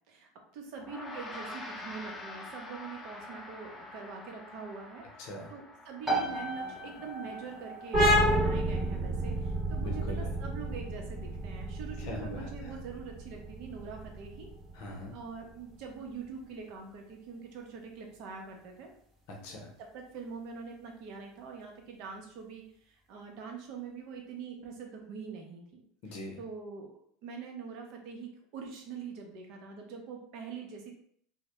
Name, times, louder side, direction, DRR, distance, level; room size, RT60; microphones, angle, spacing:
voice 1, 0.1-5.0 5.5-14.5 15.1-18.9 19.8-26.9 27.2-30.9, right 5 dB, 60° right, 2 dB, 0.6 m, -44 dB
Gong, 0.8-10.3, left 2 dB, 20° left, 0.5 m, -47 dB
voice 2, 5.2-5.5 9.8-10.3 12.0-12.5 14.7-15.1 19.3-19.7 26.0-26.3, left 1 dB, 65° left, 0 dB, 0.6 m, -41 dB
sound 1, 6.0-20.5, right 2 dB, 15° right, 0.8 m, -42 dB
sound 2, 7.9-15.2, equal, 40° right, 1.0 m, -30 dB
2.2 x 2.0 x 2.9 m, 0.64 s
supercardioid pair, 115°, 0 cm